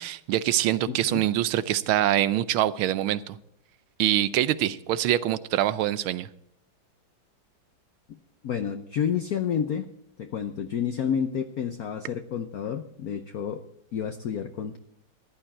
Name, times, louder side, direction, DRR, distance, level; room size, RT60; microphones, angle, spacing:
voice 1, 0.0-3.4 4.0-6.3, right 13 dB, 85° right, 15 dB, 1.5 m, -24 dB
voice 2, 0.9-1.3 8.1-9.8 10.2-13.6 13.9-14.8, left 8 dB, 60° left, 6 dB, 1.0 m, -30 dB
14.5 x 11.5 x 4.3 m, 0.72 s
omnidirectional pair, 2.2 m